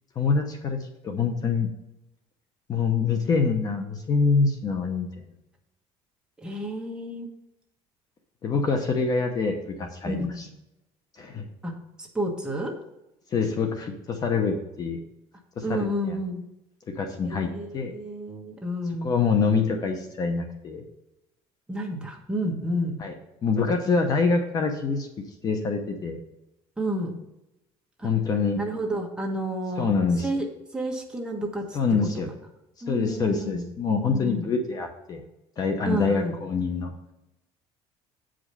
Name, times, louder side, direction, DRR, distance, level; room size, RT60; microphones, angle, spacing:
voice 1, 0.2-0.8 1.0-1.7 2.7-5.1 8.4-10.5 11.2-11.4 13.3-15.0 15.6-16.2 16.9-17.9 19.0-20.8 23.0-23.1 23.4-25.1 25.4-26.2 28.0-28.6 29.8-30.3 31.7-32.3 32.9-35.2 35.6-36.9, left 4 dB, 30° left, 5 dB, 0.9 m, -25 dB
voice 2, 6.4-7.3 10.0-10.5 11.6-11.7 12.0-12.7 15.6-16.4 17.2-19.1 21.7-22.9 26.8-27.1 28.0-28.1 28.6-29.9 30.2-30.5 30.7-31.8 32.8-33.6 34.0-34.5 35.8-36.3, equal, 5° right, 0 dB, 1.3 m, -30 dB
8.8 x 5.1 x 5.6 m, 0.89 s
cardioid pair, 160°, 12 cm